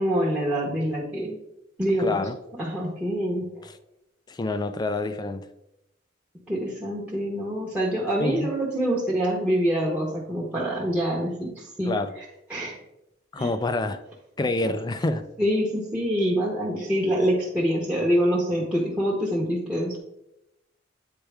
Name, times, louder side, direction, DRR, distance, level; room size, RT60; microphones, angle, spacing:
voice 1, 0.0-1.4 1.8-2.2 2.6-3.7 6.5-11.9 12.5-12.8 13.3-13.5 14.6-14.7 15.4-20.0, equal, 5° right, 1.0 m, -25 dB
voice 2, 2.0-2.4 3.6-3.7 4.3-5.5 8.2-8.5 11.9-12.1 13.3-14.0 14.4-15.3, left 2 dB, 20° left, 0.4 m, -27 dB
8.7 x 4.5 x 3.4 m
head